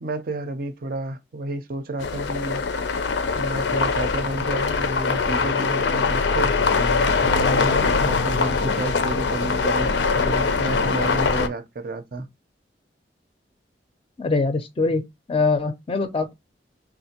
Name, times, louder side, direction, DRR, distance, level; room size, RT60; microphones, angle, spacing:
voice 1, 0.0-2.6 3.4-6.5 7.2-12.3, right 2 dB, 55° right, 0.5 m, -31 dB
sound 1, 2.0-11.5, left 4 dB, 90° left, 0.5 m, -22 dB
voice 2, 14.2-15.0 15.3-16.3, left 3 dB, 30° left, 0.4 m, -23 dB
3.5 x 2.4 x 2.8 m
head